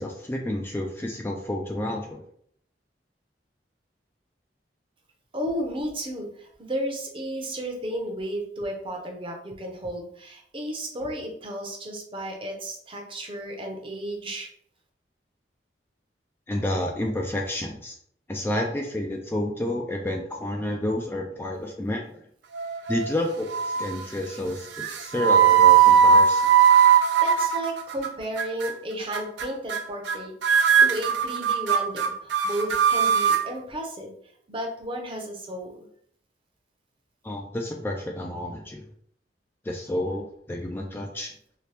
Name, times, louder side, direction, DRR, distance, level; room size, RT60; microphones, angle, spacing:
voice 1, 0.0-2.2 16.5-18.0 18.3-22.2 22.9-26.4 37.2-38.9 39.6-41.3, left 1 dB, 15° left, 1 dB, 0.3 m, -30 dB
voice 2, 5.3-14.5 24.3-24.4 27.2-34.1 34.5-35.9, right 1 dB, 30° right, 1 dB, 0.7 m, -33 dB
sound 1, 22.5-23.1 23.5-24.0 24.8-28.1 28.4-28.7 29.1-29.4 29.7-29.8 30.0-30.2 30.4-33.4, right 7 dB, 80° right, 0.4 m, -19 dB
2.9 x 2.9 x 3.3 m, 0.65 s
head